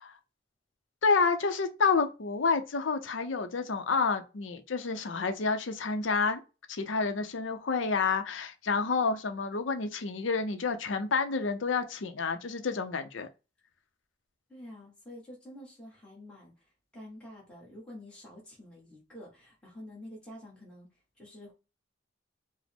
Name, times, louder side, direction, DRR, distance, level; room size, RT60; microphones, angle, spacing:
voice 1, 1.0-6.4 6.7-13.3, left 4 dB, 80° left, 0.6 m, -29 dB
voice 2, 14.5-16.7 16.9-20.9 21.2-21.5, left 1 dB, 5° left, 1.3 m, -48 dB
4.9 x 2.1 x 3.5 m
head